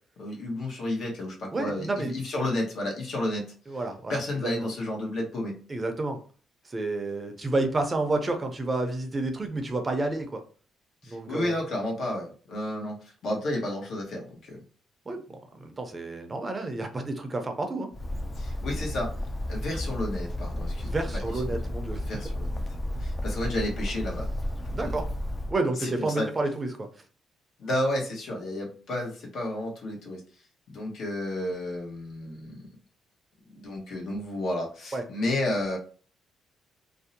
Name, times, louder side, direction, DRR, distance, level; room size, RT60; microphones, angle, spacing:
voice 1, 0.2-3.5 4.1-5.6 11.0-14.6 18.4-19.1 19.5-21.2 22.1-22.6 23.0-24.3 24.8-25.0 25.8-26.3 27.6-30.2 30.7-32.7 33.5-35.8, left 1 dB, 65° left, -1 dB, 0.9 m, -31 dB
voice 2, 1.5-2.1 3.7-4.7 5.7-6.2 6.7-10.4 11.1-11.6 15.1-17.9 20.8-22.0 24.7-25.1 25.5-26.9 34.9-35.0, right 2 dB, 30° right, 5 dB, 0.5 m, -30 dB
Bird, 17.9-25.5, left 1 dB, 30° left, 0.4 m, -32 dB
2.5 x 2.0 x 2.7 m, 0.40 s
cardioid pair, 90°, 0 cm